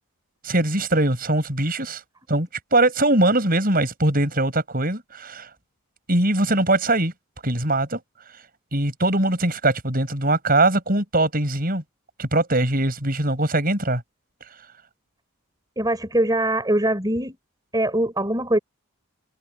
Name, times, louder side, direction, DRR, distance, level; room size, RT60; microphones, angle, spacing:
voice 1, 0.4-2.0 2.3-5.5 6.1-7.1 7.4-8.0 8.7-11.8 12.2-14.0, right 2 dB, 40° right, 7.7 m, -21 dB
voice 2, 15.8-17.4 17.7-18.6, right 1 dB, 20° right, 4.4 m, -22 dB
head